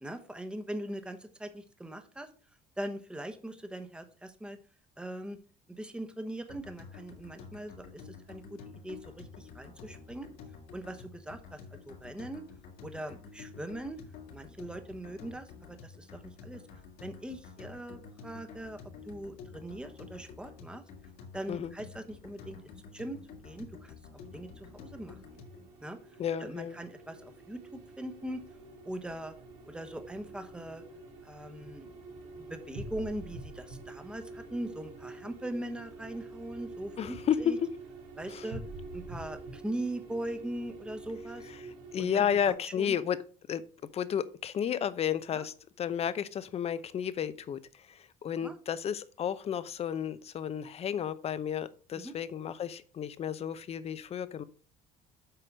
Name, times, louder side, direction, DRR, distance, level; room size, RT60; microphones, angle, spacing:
voice 1, 0.0-2.3 2.8-4.6 5.0-5.4 5.7-10.3 10.7-11.6 11.9-12.4 12.8-14.0 14.3-16.6 17.0-18.8 19.1-20.8 21.3-22.6 22.9-24.0 24.3-25.4 25.8-26.0 26.4-28.4 28.8-29.3 29.7-30.8 31.2-31.9 32.4-37.6 38.2-38.6 38.9-41.5 42.0-42.4 42.8-42.9 45.3-45.4 48.4-48.6 51.9-52.2, right 1 dB, 5° right, 7 dB, 1.1 m, -41 dB
sound 1, 6.5-25.7, left 5 dB, 75° left, 2.3 m, -50 dB
sound 2, 24.2-42.5, right 2 dB, 85° right, 3.0 m, -47 dB
voice 2, 26.2-26.8 37.0-37.7 38.3-38.4 41.6-43.2 43.5-43.6 43.9-54.4, left 8 dB, 40° left, 15 dB, 0.7 m, -32 dB
7.9 x 4.8 x 5.9 m, 0.40 s
cardioid pair, 120°, 16 cm